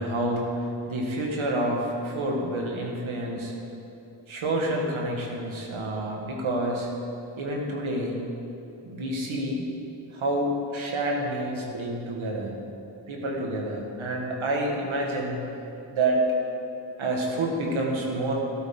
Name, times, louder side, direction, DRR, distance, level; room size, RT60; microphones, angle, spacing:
voice 1, 0.0-3.5 4.3-6.9 7.4-8.2 8.9-9.6 10.1-12.5 13.1-15.4 15.9-16.2 17.0-18.3, right 1 dB, 90° right, -1 dB, 1.8 m, -28 dB
13.0 x 12.5 x 3.9 m, 3.0 s
cardioid pair, 40°, 46 cm